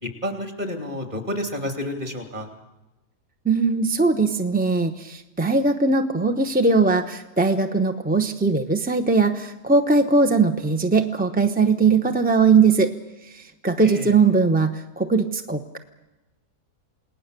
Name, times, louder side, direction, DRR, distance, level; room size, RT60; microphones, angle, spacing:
voice 1, 0.0-2.5 13.8-14.1, left 1 dB, 25° right, 5 dB, 3.0 m, -30 dB
voice 2, 3.4-12.9 13.3-15.8, right 4 dB, 10° right, 6 dB, 0.5 m, -20 dB
28.5 x 18.5 x 6.8 m, 1.0 s
omnidirectional pair, 1.7 m